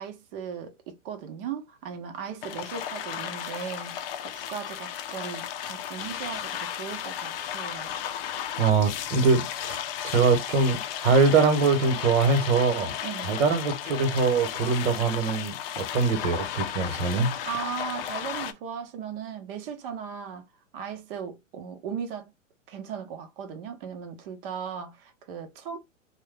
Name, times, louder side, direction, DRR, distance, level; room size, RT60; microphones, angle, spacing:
voice 1, 0.0-8.0 13.0-13.4 17.4-20.4 20.7-22.3 22.7-25.8, right 7 dB, 45° right, 1.0 m, -37 dB
sound 1, 2.4-18.5, left 10 dB, 45° left, 0.6 m, -34 dB
voice 2, 8.6-9.8 10.0-12.9 13.2-17.3, right 4 dB, 60° right, 1.3 m, -23 dB
3.0 x 2.3 x 3.5 m
hypercardioid pair, 135°, 39 cm